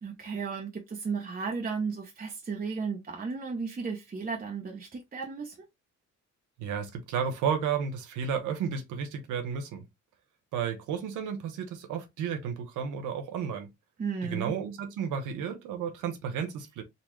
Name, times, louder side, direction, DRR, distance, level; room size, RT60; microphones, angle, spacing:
voice 1, 0.0-5.6 14.0-14.5, right 5 dB, 30° right, 0.8 m, -34 dB
voice 2, 6.6-9.8 10.5-13.7 14.3-16.8, right 7 dB, 90° right, 1.0 m, -32 dB
4.0 x 2.3 x 3.1 m
cardioid pair, 90°, 30 cm